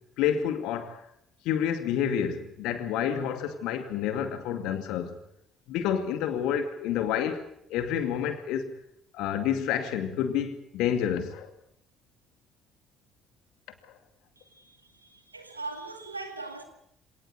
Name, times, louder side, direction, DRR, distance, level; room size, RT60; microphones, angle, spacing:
voice 1, 0.2-1.0 1.4-5.2 5.7-7.4 7.7-8.7 9.1-11.5, left 9 dB, 60° left, 2.4 m, -29 dB
voice 2, 14.4-16.6, right 3 dB, 85° right, 2.1 m, -40 dB
26.0 x 18.5 x 8.2 m
figure-of-eight pair, 45°, 0 cm